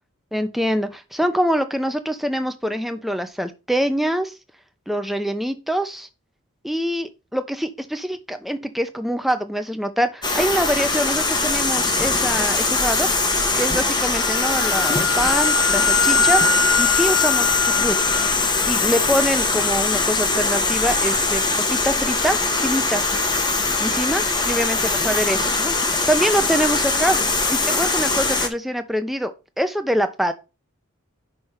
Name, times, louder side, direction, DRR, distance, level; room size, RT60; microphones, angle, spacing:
voice 1, 0.3-4.3 4.9-6.1 6.6-13.1 13.5-17.9 18.6-21.4 21.7-23.0 23.8-27.2 27.5-29.3 29.6-30.3, equal, ahead, 0.7 m, -24 dB
sound 1, 10.2-28.5, left 3 dB, 20° left, 1.1 m, -21 dB
Wind instrument woodwind instrument, 14.2-18.3, left 9 dB, 70° left, 0.5 m, -24 dB
6.0 x 4.8 x 4.8 m
head